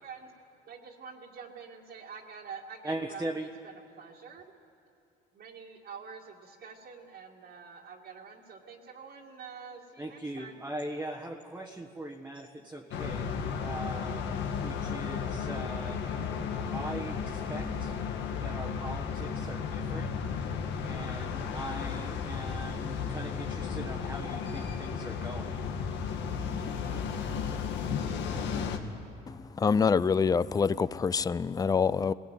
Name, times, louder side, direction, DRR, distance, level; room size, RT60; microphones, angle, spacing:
voice 1, 0.7-4.4 5.3-10.6, right 6 dB, 60° right, 2.2 m, -47 dB
voice 2, 2.8-3.5 10.0-13.3 13.6-16.0 16.7-17.9 18.4-20.1 20.9-25.6, right 1 dB, 10° right, 1.4 m, -40 dB
sound 1, 12.9-28.8, left 6 dB, 70° left, 1.7 m, -34 dB
voice 3, 29.6-32.1, left 5 dB, 20° left, 0.5 m, -25 dB
20.5 x 17.5 x 9.2 m
cardioid pair, 95°, 19 cm